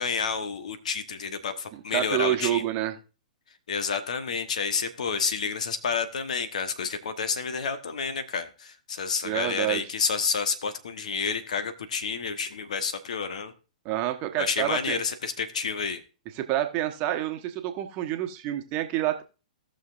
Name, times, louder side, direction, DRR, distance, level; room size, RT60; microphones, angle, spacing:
voice 1, 0.0-2.6 3.7-13.5 14.4-16.0, left 5 dB, 65° left, 10 dB, 1.1 m, -29 dB
voice 2, 1.7-3.0 9.2-9.8 13.8-15.0 16.3-19.2, right 13 dB, 35° right, 6 dB, 1.2 m, -28 dB
17.5 x 6.4 x 2.5 m, 0.32 s
figure-of-eight pair, 115°, 4 cm